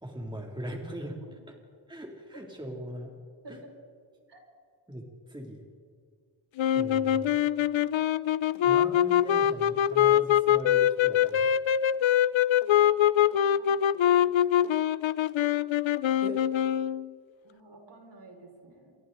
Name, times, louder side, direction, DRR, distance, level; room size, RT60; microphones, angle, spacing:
voice 1, 0.0-1.2 1.9-3.1 3.5-3.6 4.9-5.6 6.7-7.2 8.6-11.5 16.2-16.4, equal, 10° right, 0 dB, 2.7 m, -39 dB
sound 1, 6.6-17.1, left 11 dB, 70° left, 0.6 m, -24 dB
voice 2, 13.9-14.3 14.6-14.7 17.4-18.9, right 2 dB, 60° right, 1 dB, 5.3 m, -51 dB
28.5 x 23.5 x 3.9 m, 2.1 s
cardioid pair, 85°, 49 cm